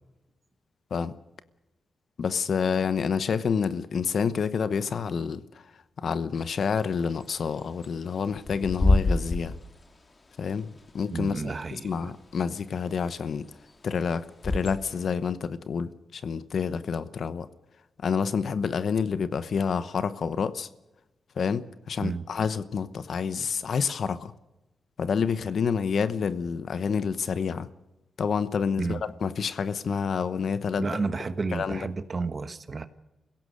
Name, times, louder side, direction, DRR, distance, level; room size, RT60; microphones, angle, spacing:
voice 1, 2.2-5.4 6.0-9.5 10.4-13.5 13.8-17.5 18.0-20.7 21.4-24.3 25.0-27.7 28.2-31.0 31.5-31.8, left 6 dB, 65° left, 1.0 m, -28 dB
Bird / Wind, 6.4-15.1, left 2 dB, 35° left, 2.4 m, -30 dB
voice 2, 11.1-12.1 22.0-22.3 28.8-29.1 30.8-32.9, right 4 dB, 40° right, 1.3 m, -31 dB
25.5 x 16.5 x 6.5 m
cardioid pair, 90°, 0 cm